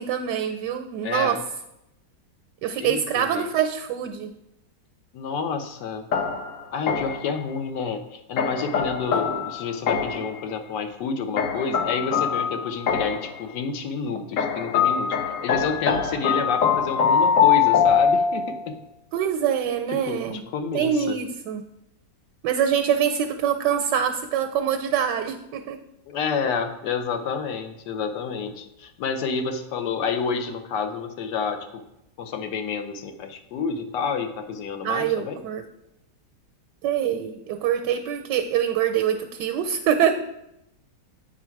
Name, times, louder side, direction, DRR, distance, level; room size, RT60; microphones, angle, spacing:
voice 1, 0.0-1.4 2.6-4.3 19.1-20.4 20.7-21.6 22.4-25.8 34.8-35.6 36.8-40.1, right 9 dB, 85° right, 6 dB, 1.2 m, -24 dB
voice 2, 1.0-1.4 2.8-3.5 5.1-6.1 6.7-18.8 19.9-21.2 26.1-31.8 32.2-35.4, left 5 dB, 85° left, 7 dB, 1.3 m, -29 dB
sound 1, 6.1-7.3 8.4-10.3 11.4-13.3 14.4-18.7, left 7 dB, 60° left, 1.1 m, -23 dB
8.7 x 4.7 x 4.5 m, 0.87 s
omnidirectional pair, 1.8 m